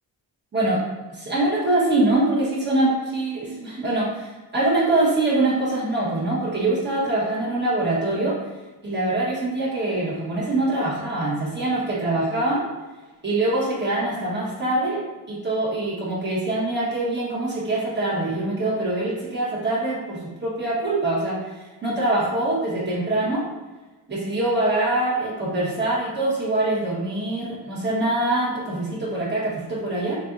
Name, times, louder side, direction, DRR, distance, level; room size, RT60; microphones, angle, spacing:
voice 1, 1.1-8.3 8.8-12.6 13.2-15.0 15.3-21.4 21.8-23.4 24.1-30.2, right 2 dB, 25° right, -7 dB, 1.5 m, -24 dB
6.6 x 2.7 x 2.6 m, 1.2 s
wide cardioid pair, 170°, 44 cm